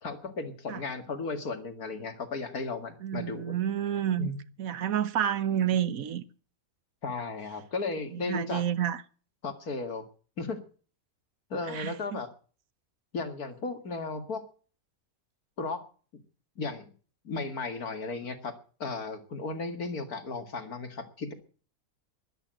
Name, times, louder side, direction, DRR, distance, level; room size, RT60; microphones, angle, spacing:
voice 1, 0.0-3.6 4.2-4.4 7.0-8.6 9.4-10.1 10.4-10.6 11.5-12.3 13.1-14.4 15.6-15.8 16.6-16.9 17.2-18.5 18.8-21.3, left 3 dB, 85° left, 2.6 m, -35 dB
voice 2, 3.0-4.3 4.6-6.2 8.1-9.0 11.7-12.2, right 10 dB, 70° right, 1.3 m, -29 dB
12.5 x 11.5 x 7.7 m
omnidirectional pair, 1.5 m